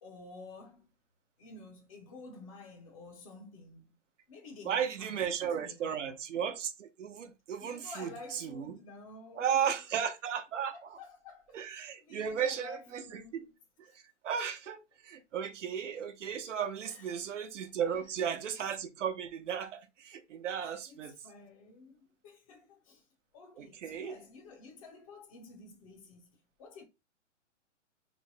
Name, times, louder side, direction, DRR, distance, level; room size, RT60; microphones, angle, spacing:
voice 1, 0.0-0.9 1.4-4.0 4.3-6.1 7.6-9.8 10.7-13.5 13.9-14.0 14.3-14.4 16.8-17.3 17.8-18.0 20.6-23.1 23.3-26.8, left 3 dB, 30° left, 0.6 m, -51 dB
voice 2, 4.6-8.8 9.3-10.7 11.5-13.4 14.2-21.1 23.6-24.2, right 8 dB, 75° right, 0.8 m, -35 dB
3.2 x 2.1 x 3.9 m
hypercardioid pair, 150°, 37 cm